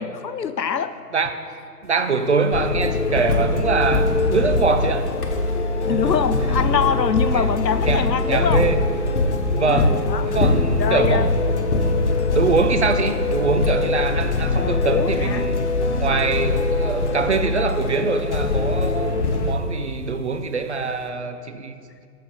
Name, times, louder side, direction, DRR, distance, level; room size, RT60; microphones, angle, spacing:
voice 1, 0.0-1.0 5.9-8.7 9.7-10.4 10.8-11.3 14.6-15.5 17.2-17.4, left 7 dB, 85° left, 13 dB, 0.7 m, -24 dB
sound 1, 1.8-1.9 2.2-3.6 3.9-19.9 20.9-21.0, left 2 dB, 65° left, 1.7 m, -26 dB
voice 2, 1.8-5.1 5.9-6.1 7.3-7.5 7.8-8.8 9.5-10.0 10.2-11.6 12.3-15.6 16.0-21.8, right 4 dB, 45° right, 8 dB, 0.6 m, -24 dB
sound 2, 2.5-19.5, left 3 dB, 45° left, 0.6 m, -23 dB
13.5 x 6.4 x 4.2 m, 2.3 s
figure-of-eight pair, 150°, 48 cm